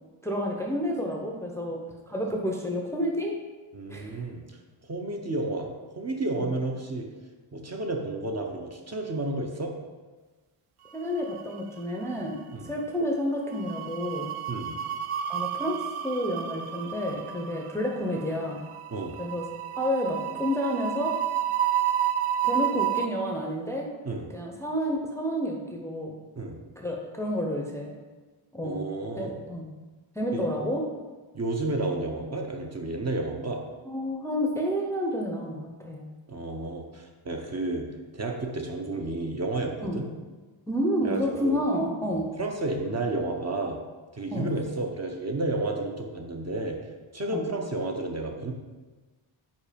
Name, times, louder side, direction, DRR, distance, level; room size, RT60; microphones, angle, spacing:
voice 1, 0.2-1.8 2.1-3.4 3.9-4.2 6.4-6.5 10.9-14.3 15.3-18.6 19.2-19.4 19.7-21.2 22.4-23.9 24.3-26.1 26.8-27.9 28.5-28.8 29.2-29.7 30.2-30.8 33.8-36.1 39.8-40.0 40.7-42.3 44.3-44.5 47.3-47.5, equal, 5° left, 0 dB, 0.6 m, -30 dB
voice 2, 3.7-4.6 4.8-5.7 6.0-7.1 7.5-9.7 12.5-12.7 14.5-14.8 18.9-19.2 24.0-24.3 26.3-26.6 28.6-29.3 30.3-30.4 31.3-33.6 36.3-37.9 38.1-40.0 41.0-41.6 42.1-43.8 44.1-46.8 47.1-48.5, right 2 dB, 30° right, 2 dB, 0.7 m, -31 dB
sound 1, 11.0-11.8 12.1-12.3 13.5-23.1, right 10 dB, 80° right, 0.6 m, -30 dB
5.3 x 4.6 x 5.0 m, 1.3 s
wide cardioid pair, 140°, 50 cm